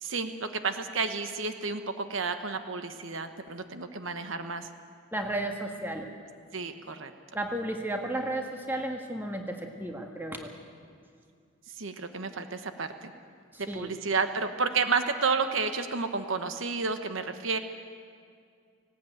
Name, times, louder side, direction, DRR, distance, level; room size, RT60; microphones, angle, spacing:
voice 1, 0.0-4.7 6.5-7.1 11.8-13.1 13.6-17.6, right 4 dB, 65° right, 8 dB, 1.1 m, -31 dB
voice 2, 5.1-6.1 7.3-10.5 13.5-14.0, right 1 dB, 10° right, 3 dB, 1.7 m, -33 dB
18.5 x 18.0 x 9.2 m, 2.2 s
head